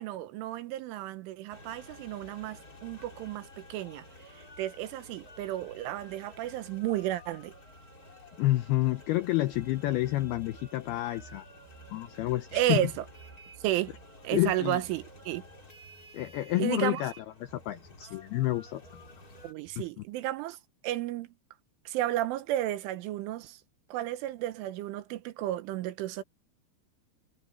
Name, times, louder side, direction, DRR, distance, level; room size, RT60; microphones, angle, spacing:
voice 1, 0.0-4.0 4.6-7.5 12.5-13.1 13.6-13.9 14.3-15.4 16.6-17.0 19.4-20.6 20.8-21.3 21.9-23.6 23.9-26.2, right 14 dB, 85° right, 3.7 m, -32 dB
sound 1, 1.5-19.5, left 1 dB, 20° left, 4.0 m, -52 dB
voice 2, 8.4-11.4 11.9-12.9 14.3-14.8 16.1-18.8 19.8-20.0, left 16 dB, 85° left, 2.2 m, -29 dB
sound 2, 9.5-16.8 17.5-20.0, right 7 dB, 65° right, 2.9 m, -55 dB
omnidirectional pair, 5.5 m